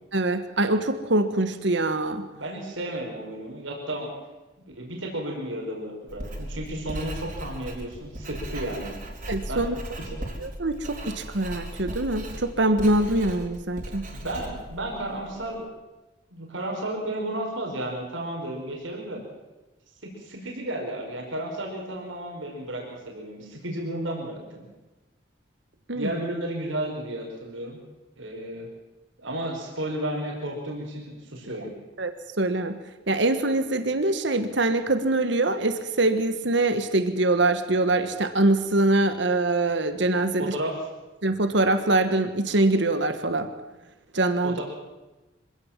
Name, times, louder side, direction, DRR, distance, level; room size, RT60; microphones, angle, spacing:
voice 1, 0.1-2.2 9.3-9.7 10.4-14.1 25.9-26.1 32.0-32.8 33.1-40.5 41.2-43.5 44.1-44.6, right 2 dB, 70° right, 9 dB, 1.4 m, -24 dB
voice 2, 2.3-4.1 4.6-9.0 9.5-9.7 14.1-15.7 16.3-19.2 20.0-24.7 25.9-27.8 28.2-28.7 29.2-31.7 40.4-40.9 44.4-44.6, right 1 dB, 85° right, 0 dB, 5.3 m, -33 dB
Writing, 6.1-15.5, right 1 dB, 45° right, 4.0 m, -37 dB
25.0 x 17.0 x 7.5 m, 1.1 s
head